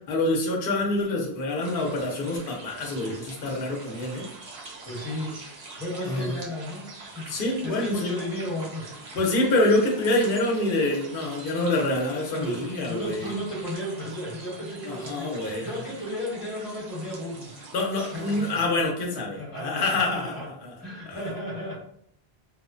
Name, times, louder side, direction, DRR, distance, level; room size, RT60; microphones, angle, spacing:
voice 1, 0.1-4.2 6.1-6.3 7.3-8.1 9.1-13.3 14.9-15.7 17.7-20.3 20.6-20.7, left 2 dB, 60° left, 0 dB, 0.8 m, -26 dB
sound 1, 1.6-18.7, right 3 dB, 85° right, 0.9 m, -44 dB
voice 2, 4.8-9.2 12.4-17.6 18.1-18.7 19.1-20.5 20.8-21.8, equal, 10° left, -7 dB, 1.0 m, -34 dB
2.9 x 2.1 x 2.5 m, 0.69 s
omnidirectional pair, 1.1 m